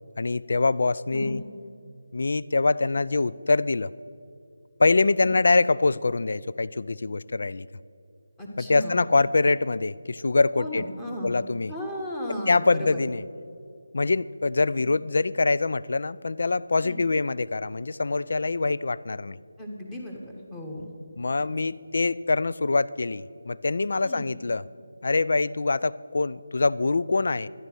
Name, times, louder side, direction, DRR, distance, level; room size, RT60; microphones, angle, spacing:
voice 1, 0.2-1.4 2.1-3.9 4.8-7.7 8.6-10.8 11.2-11.7 12.5-13.2 13.9-19.4 21.2-24.6 25.0-27.5, left 3 dB, 60° left, 18 dB, 0.3 m, -24 dB
voice 2, 8.4-9.0 10.6-11.3 11.7-13.0 16.8-17.0 19.6-20.9 21.4-21.5 24.0-24.3, left 1 dB, 10° left, 0 dB, 1.4 m, -35 dB
12.5 x 10.5 x 6.2 m, 2.5 s
figure-of-eight pair, 165°, 0 cm